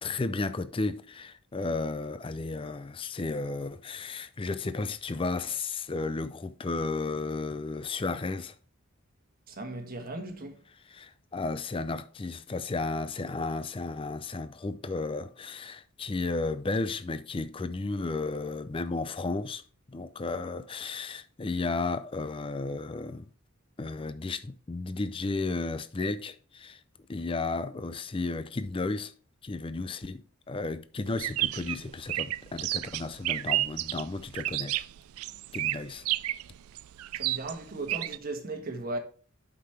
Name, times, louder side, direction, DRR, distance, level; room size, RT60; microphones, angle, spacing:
voice 1, 0.0-8.5 10.8-19.6 19.9-23.3 23.8-26.8 27.1-29.1 29.4-34.8 35.5-36.0, left 3 dB, 25° left, 0.4 m, -33 dB
voice 2, 9.5-10.6 37.1-39.0, right 2 dB, 40° right, 1.3 m, -37 dB
sound 1, 31.1-38.2, right 15 dB, 80° right, 0.3 m, -31 dB
8.1 x 6.0 x 3.3 m
head